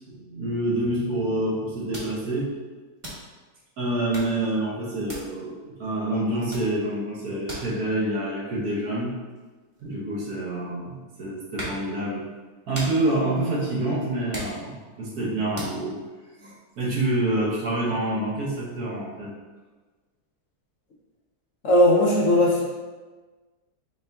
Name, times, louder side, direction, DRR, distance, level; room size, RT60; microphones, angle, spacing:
voice 1, 0.1-2.5 3.8-9.1 9.8-12.3 12.7-16.0 16.4-19.3, right 1 dB, 75° right, -5 dB, 1.6 m, -27 dB
sound 1, 1.2-1.3 1.6-1.7 1.9-2.6 3.0-3.5 4.0-4.5 5.0-5.7 6.0-6.2 6.5-10.7 11.2-11.9 12.4-15.0 15.6-15.9, equal, 25° right, 1.0 m, -39 dB
voice 2, 21.6-22.6, left 1 dB, 60° left, -3 dB, 1.0 m, -18 dB
4.9 x 2.8 x 3.4 m, 1.3 s
omnidirectional pair, 1.6 m